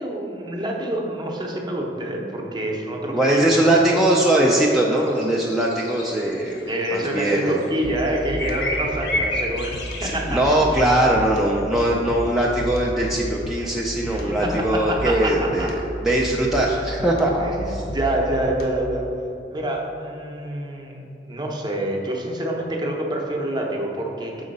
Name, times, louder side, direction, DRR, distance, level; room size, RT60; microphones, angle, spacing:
voice 1, 0.0-3.4 6.7-9.7 10.0-10.4 14.4-15.7 17.4-19.1 19.5-24.4, right 1 dB, 25° right, 0 dB, 0.8 m, -27 dB
voice 2, 3.1-7.7 10.0-17.8, right 1 dB, ahead, -4 dB, 0.4 m, -21 dB
sound 1, 4.2-4.7 5.0-10.9, left 1 dB, 80° left, 1.0 m, -31 dB
sound 2, 7.8-19.0, equal, 55° left, 0.7 m, -33 dB
6.1 x 3.9 x 5.3 m, 2.9 s
head